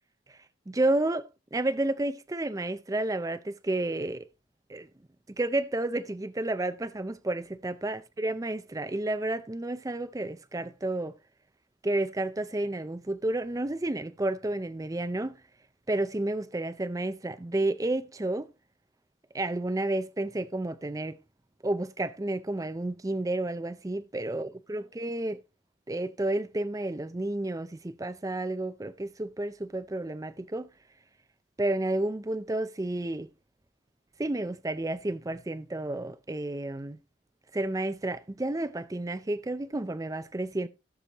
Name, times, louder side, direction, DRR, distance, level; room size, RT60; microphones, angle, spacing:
voice 1, 0.7-4.3 4.7-4.9 5.4-11.2 11.8-15.4 15.9-18.5 19.3-21.2 21.6-25.4 25.9-30.7 31.6-33.3 34.2-37.0 37.5-40.7, right 2 dB, 15° right, 0.4 m, -31 dB
17.5 x 6.8 x 2.9 m
head